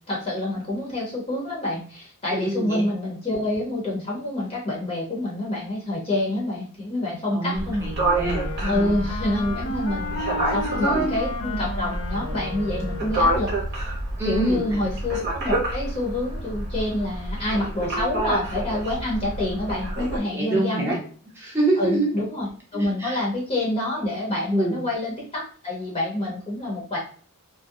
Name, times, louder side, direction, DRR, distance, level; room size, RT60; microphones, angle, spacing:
voice 1, 0.1-7.9 8.6-13.5 14.3-21.0 21.8-27.0, left 1 dB, 25° left, -5 dB, 0.8 m, -27 dB
voice 2, 2.3-2.8 7.3-8.9 10.7-11.1 14.2-14.8 20.3-21.0 21.4-22.1 22.7-23.2 24.5-24.8, right 2 dB, 10° right, -4 dB, 0.8 m, -26 dB
sound 1, 7.5-20.2, right 1 dB, 50° right, 0.8 m, -28 dB
Wind instrument woodwind instrument, 8.0-13.4, left 1 dB, 80° left, 0.6 m, -33 dB
2.4 x 2.2 x 2.6 m, 0.44 s
head